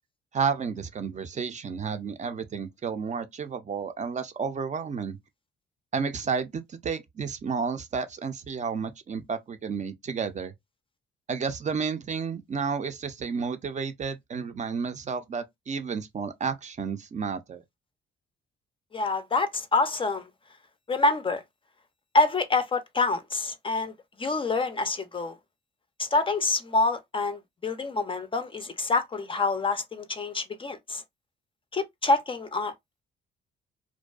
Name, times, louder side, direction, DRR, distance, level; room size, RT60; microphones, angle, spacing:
voice 1, 0.3-5.2 5.9-10.5 11.3-17.6, right 5 dB, 35° right, 0.5 m, -31 dB
voice 2, 18.9-20.3 20.9-21.4 22.1-23.9 24.2-25.4 26.0-31.0 31.7-32.7, left 3 dB, 25° left, 0.4 m, -26 dB
2.5 x 2.2 x 2.2 m
cardioid pair, 90°, 20 cm